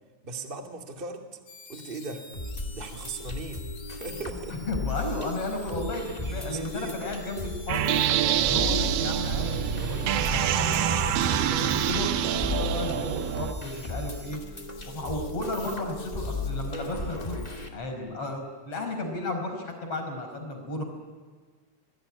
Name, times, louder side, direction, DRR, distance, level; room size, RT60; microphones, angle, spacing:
voice 1, 0.2-1.3 1.7-2.3 2.7-4.6 6.2-6.9, right 3 dB, 20° right, 3 dB, 1.7 m, -38 dB
sound 1, 1.5-17.7, left 3 dB, 50° left, 4.5 m, -49 dB
sound 2, 2.3-17.7, left 2 dB, 15° left, 1.4 m, -36 dB
voice 2, 4.5-8.0 8.3-14.4 14.9-17.4 17.7-20.8, left 2 dB, 35° left, 4 dB, 5.8 m, -34 dB
sound 3, 7.7-13.5, right 11 dB, 70° right, 2.4 m, -26 dB
26.0 x 20.5 x 9.9 m, 1.5 s
omnidirectional pair, 4.9 m